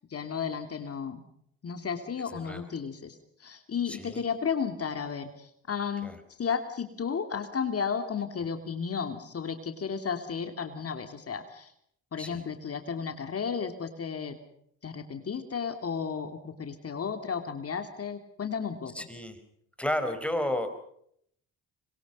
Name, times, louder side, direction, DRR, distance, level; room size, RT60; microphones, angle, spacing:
voice 1, 0.1-1.2 1.6-6.1 6.4-11.7 12.1-14.4 14.8-19.1, left 6 dB, 45° left, 7 dB, 2.8 m, -33 dB
voice 2, 2.2-2.7 3.8-4.2 6.0-6.2 12.2-12.4 18.9-19.4 19.8-20.7, left 1 dB, 5° left, 8 dB, 4.7 m, -32 dB
26.0 x 22.5 x 5.5 m, 0.69 s
cardioid pair, 75°, 32 cm